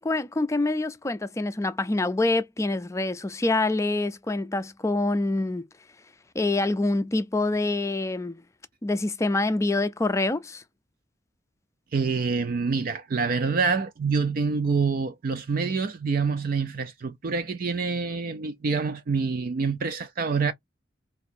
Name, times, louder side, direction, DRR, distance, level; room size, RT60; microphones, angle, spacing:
voice 1, 0.0-5.6 6.4-8.4 8.8-10.6, left 2 dB, 15° left, 0.4 m, -26 dB
voice 2, 11.9-20.5, right 5 dB, 50° right, 0.4 m, -26 dB
2.9 x 2.5 x 4.4 m
head